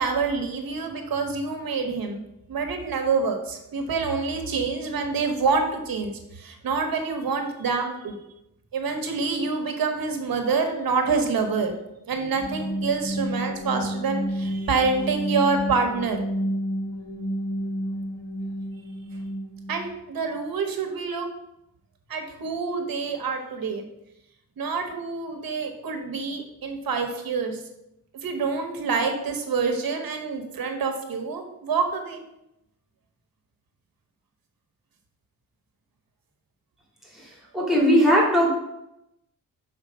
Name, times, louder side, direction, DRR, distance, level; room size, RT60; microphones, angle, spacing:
voice 1, 0.0-2.2 2.5-8.2 8.7-11.7 12.1-16.3 19.7-21.3 22.1-23.8 24.6-27.6 28.2-32.2, right 4 dB, 85° right, 5 dB, 1.3 m, -27 dB
sound 1, 12.1-19.9, equal, 30° left, 1.2 m, -30 dB
voice 2, 37.5-38.5, equal, ahead, -5 dB, 2.3 m, -18 dB
6.3 x 4.9 x 5.5 m, 0.85 s
wide cardioid pair, 175°, 34 cm